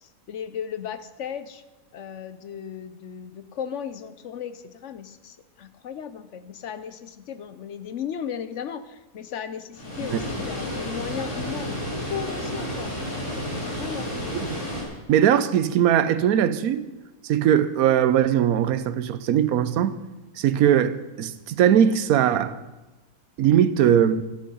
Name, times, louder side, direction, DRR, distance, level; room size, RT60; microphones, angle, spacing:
voice 1, 0.0-1.6 1.9-12.9 13.7-14.1, left 8 dB, 60° left, 1.0 m, -35 dB
Water, 9.7-14.8, equal, 80° left, 3.8 m, -31 dB
voice 2, 15.1-16.9 17.2-20.0 20.4-22.6 23.4-24.2, right 9 dB, 90° right, 1.1 m, -20 dB
13.0 x 10.0 x 5.5 m
omnidirectional pair, 1.5 m